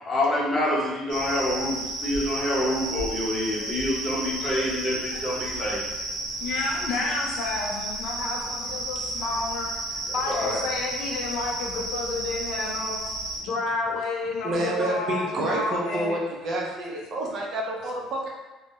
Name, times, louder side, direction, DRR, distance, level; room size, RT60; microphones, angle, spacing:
voice 1, 0.1-5.9 10.1-10.6, left 1 dB, 25° left, -5 dB, 0.7 m, -27 dB
sound 1, 1.1-13.4, right 2 dB, 80° right, 0.9 m, -33 dB
voice 2, 6.4-9.8 10.1-13.0 13.4-16.2, left 3 dB, 70° left, -1 dB, 0.5 m, -30 dB
voice 3, 14.4-18.3, right 1 dB, 50° right, -1 dB, 0.5 m, -29 dB
2.2 x 2.0 x 2.8 m, 1.2 s
cardioid pair, 115°, 0 cm